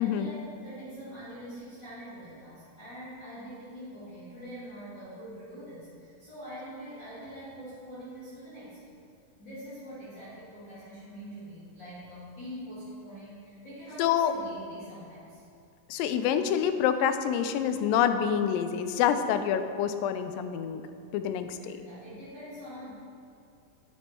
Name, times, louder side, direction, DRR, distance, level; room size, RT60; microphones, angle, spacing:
voice 1, 0.0-8.9 9.4-15.4 21.5-22.9, equal, 35° left, -12 dB, 2.6 m, -44 dB
voice 2, 14.0-14.3 15.9-20.8 21.1-21.8, left 8 dB, 90° left, 9 dB, 2.3 m, -27 dB
8.6 x 8.3 x 4.4 m, 2.5 s
omnidirectional pair, 3.9 m